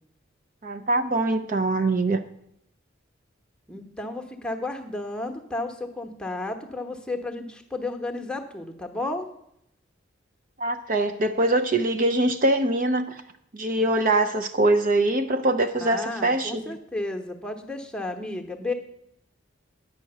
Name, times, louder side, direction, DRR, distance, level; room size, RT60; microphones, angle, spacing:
voice 1, 0.6-2.2 10.6-13.2 13.5-16.7, right 2 dB, 45° right, 8 dB, 0.6 m, -23 dB
voice 2, 3.7-9.3 15.8-18.7, left 2 dB, 5° left, 4 dB, 1.0 m, -32 dB
9.6 x 6.0 x 8.0 m, 0.76 s
head